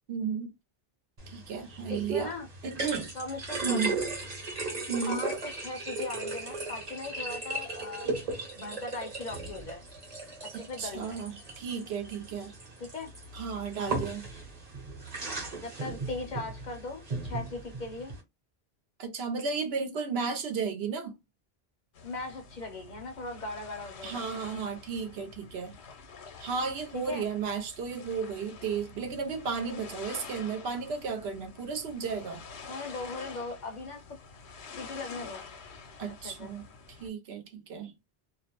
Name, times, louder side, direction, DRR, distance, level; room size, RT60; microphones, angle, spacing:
voice 1, 0.1-0.5 1.3-2.3 2.6-3.2 3.6-4.0 4.9-5.3 10.5-12.6 13.3-14.3 19.0-21.2 24.0-25.8 26.4-32.4 36.0-37.9, right 5 dB, 75° right, 0.9 m, -34 dB
sound 1, 1.2-18.2, right 3 dB, 40° right, 0.9 m, -37 dB
voice 2, 1.9-2.4 3.2-3.9 5.1-8.1 8.5-9.9 10.5-11.2 12.9-13.1 15.6-18.2 22.0-24.2 27.1-27.2 32.7-34.2 34.8-35.4 36.2-36.5, left 3 dB, 50° left, 0.7 m, -39 dB
sound 2, 21.9-37.1, left 5 dB, 85° left, 0.9 m, -48 dB
2.4 x 2.0 x 2.9 m
omnidirectional pair, 1.1 m